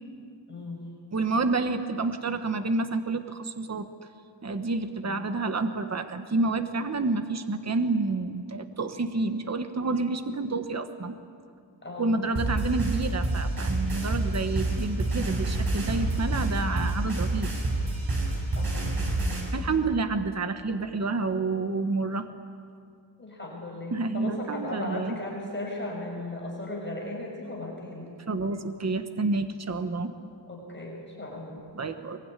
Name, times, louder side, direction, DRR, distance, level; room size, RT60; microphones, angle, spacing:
voice 1, 0.5-0.9 5.0-5.2 11.8-12.2 18.5-18.9 23.2-28.1 30.5-31.6, left 2 dB, 25° left, -2 dB, 6.7 m, -36 dB
voice 2, 1.1-3.9 4.4-11.2 12.0-17.5 19.5-22.2 23.9-25.2 28.3-30.1 31.7-32.2, right 3 dB, 35° right, 8 dB, 1.3 m, -29 dB
sound 1, 12.4-19.4, right 2 dB, 55° right, 6.6 m, -28 dB
24.0 x 23.0 x 10.0 m, 2.3 s
wide cardioid pair, 145°, 44 cm